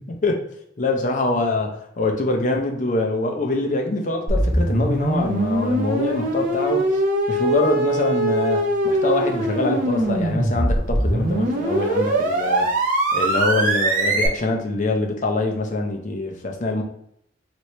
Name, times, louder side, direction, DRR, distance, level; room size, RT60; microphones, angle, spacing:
voice 1, 0.1-0.4 0.8-6.8 7.3-12.7 13.1-16.8, left 2 dB, 40° left, 3 dB, 0.5 m, -24 dB
sound 1, 4.3-14.3, right 1 dB, 45° right, 0.6 m, -22 dB
3.1 x 3.0 x 2.7 m, 0.73 s
head